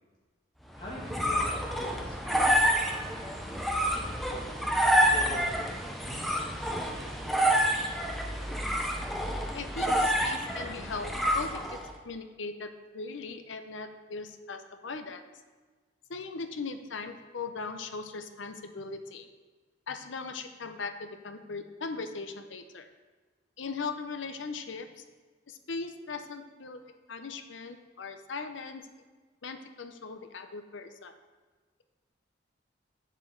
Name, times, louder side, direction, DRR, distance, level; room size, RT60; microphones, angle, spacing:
sound 1, 0.7-11.9, equal, ahead, 0.6 m, -28 dB
voice 1, 0.8-3.2 3.9-4.5 5.1-5.6 6.0-7.9, left 1 dB, 25° left, -6 dB, 2.1 m, -45 dB
voice 2, 9.5-11.8 12.0-15.2 16.1-19.3 19.9-22.9 23.6-25.0 25.5-28.9 29.4-31.1, left 4 dB, 75° left, 8 dB, 0.7 m, -39 dB
8.0 x 7.4 x 3.8 m, 1.4 s
head